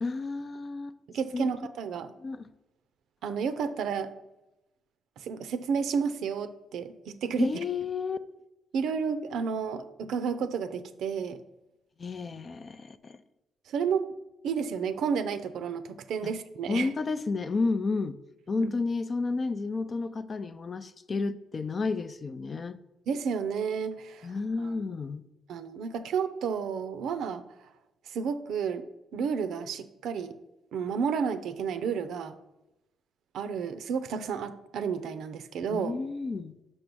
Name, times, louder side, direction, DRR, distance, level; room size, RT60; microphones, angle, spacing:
voice 1, 0.0-1.0 1.3-1.5 2.2-2.5 7.4-8.2 12.0-13.2 16.2-16.3 16.7-18.2 18.5-22.8 24.2-25.2 35.7-36.6, left 4 dB, 40° left, 12 dB, 0.4 m, -31 dB
voice 2, 1.1-2.1 3.2-4.1 5.2-7.5 8.7-11.4 13.7-14.1 14.4-16.9 18.6-18.7 23.1-24.3 24.6-24.8 25.5-27.4 28.1-28.8 29.1-30.3 30.7-32.3 33.3-36.0, right 6 dB, 75° right, 11 dB, 0.6 m, -31 dB
6.0 x 5.3 x 6.1 m, 0.96 s
cardioid pair, 90°, 0 cm